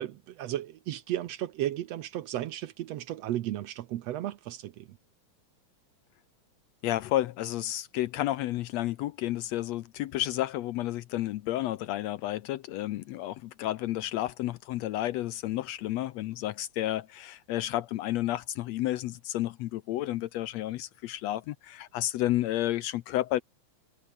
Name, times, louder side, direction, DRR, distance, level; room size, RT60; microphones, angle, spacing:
voice 1, 0.0-4.9, right 13 dB, 70° right, 1.8 m, -34 dB
voice 2, 6.8-23.4, left 14 dB, 75° left, 1.7 m, -31 dB
omnidirectional pair, 3.5 m